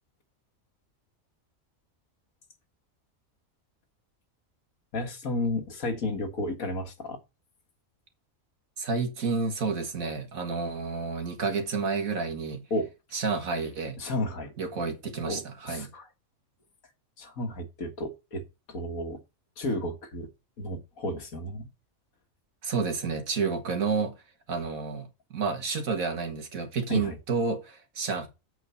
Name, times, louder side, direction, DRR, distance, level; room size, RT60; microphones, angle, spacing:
voice 1, 4.9-7.2 12.7-12.9 14.0-14.5 15.3-16.1 17.2-19.2 19.6-20.3 20.6-21.7 26.9-27.2, left 1 dB, 90° left, 2.1 m, -32 dB
voice 2, 8.8-12.7 13.1-14.0 14.6-15.9 22.6-24.2 24.5-28.3, right 4 dB, 85° right, 2.1 m, -30 dB
8.0 x 4.8 x 6.8 m
omnidirectional pair, 1.4 m